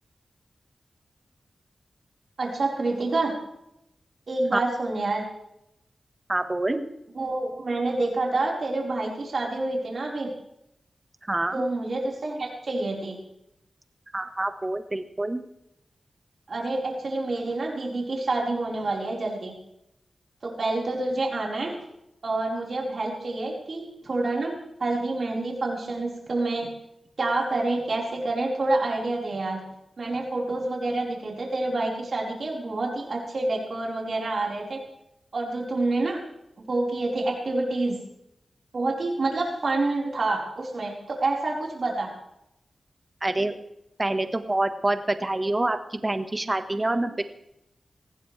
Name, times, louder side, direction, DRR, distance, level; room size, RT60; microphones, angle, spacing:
voice 1, 2.4-3.3 4.3-5.2 7.1-10.3 11.5-13.2 16.5-19.5 20.4-21.7 22.2-24.5 24.8-26.7 27.2-29.6 30.0-34.8 35.3-36.2 36.6-38.0 38.7-42.1, right 2 dB, 65° right, -2 dB, 4.7 m, -27 dB
voice 2, 6.3-6.8 11.3-11.6 14.1-15.4 43.2-43.6 44.0-47.2, right 2 dB, 30° right, 8 dB, 1.5 m, -26 dB
19.0 x 16.0 x 3.4 m, 0.81 s
cardioid pair, 60°, 0 cm